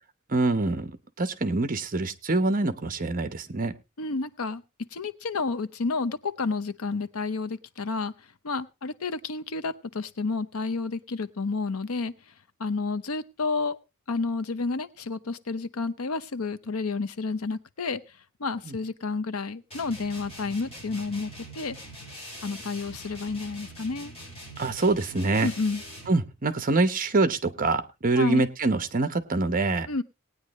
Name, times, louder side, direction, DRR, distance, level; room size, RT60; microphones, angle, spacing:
voice 1, 0.3-3.7 18.6-18.8 24.6-25.5 26.1-29.9, right 2 dB, 40° right, 11 dB, 0.9 m, -25 dB
voice 2, 4.0-4.6 4.9-8.1 8.4-12.1 12.6-13.8 14.1-18.0 18.4-21.3 21.6-21.8 22.4-24.1 25.4-25.8 28.2-28.5 29.9-30.0, left 4 dB, 85° left, 14 dB, 0.8 m, -30 dB
sound 1, 19.7-26.2, equal, 30° left, 4.9 m, -43 dB
18.5 x 9.4 x 3.1 m, 0.26 s
head